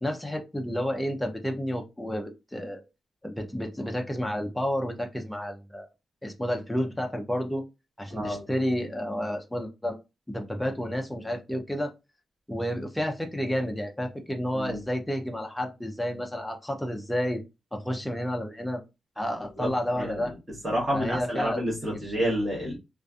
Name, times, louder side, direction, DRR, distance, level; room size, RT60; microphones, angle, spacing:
voice 1, 0.0-2.8 3.2-5.9 6.2-7.6 8.0-10.0 10.3-11.9 12.5-17.4 17.7-18.8 19.2-20.3 20.9-21.6 21.9-22.0, equal, 5° left, 3 dB, 0.4 m, -30 dB
voice 2, 8.1-8.4 14.5-14.8 19.6-19.7 19.9-20.2 20.6-22.8, equal, 20° right, -5 dB, 1.0 m, -29 dB
2.6 x 2.4 x 2.2 m, 0.25 s
wide cardioid pair, 180°, 0 cm